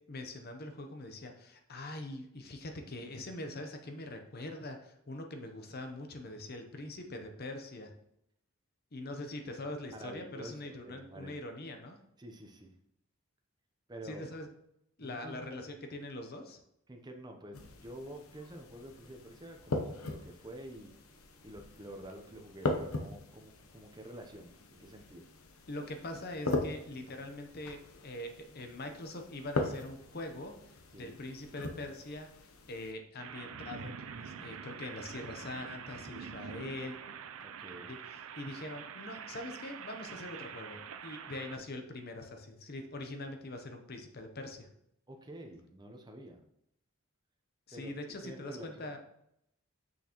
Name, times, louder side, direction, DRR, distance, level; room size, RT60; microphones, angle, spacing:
voice 1, 0.1-7.9 8.9-12.0 14.0-14.5 15.0-16.6 25.7-37.0 37.9-44.7 47.7-49.0, left 1 dB, 45° left, 5 dB, 0.8 m, -43 dB
voice 2, 9.9-11.3 12.2-12.7 13.9-14.2 15.0-15.4 16.9-20.9 21.4-25.2 30.9-31.2 37.4-37.9 45.1-46.4 47.7-47.9 48.2-48.9, right 1 dB, 20° right, 3 dB, 0.7 m, -48 dB
sound 1, 17.5-32.9, left 2 dB, 85° left, 0.8 m, -40 dB
sound 2, 33.2-41.6, right 7 dB, 70° right, 0.5 m, -46 dB
6.5 x 5.9 x 3.0 m, 0.76 s
head